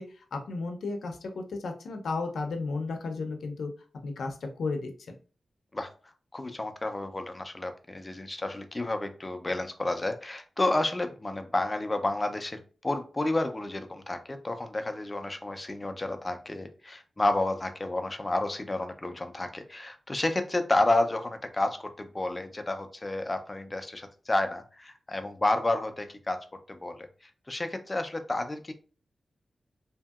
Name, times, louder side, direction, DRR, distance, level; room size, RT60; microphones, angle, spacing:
voice 1, 0.0-3.7 4.0-4.9, left 3 dB, 85° left, 4 dB, 0.5 m, -33 dB
voice 2, 6.3-12.6 12.8-27.1 27.5-28.7, left 2 dB, 20° left, 7 dB, 0.4 m, -30 dB
2.8 x 2.6 x 2.3 m, 0.38 s
wide cardioid pair, 135°, 0 cm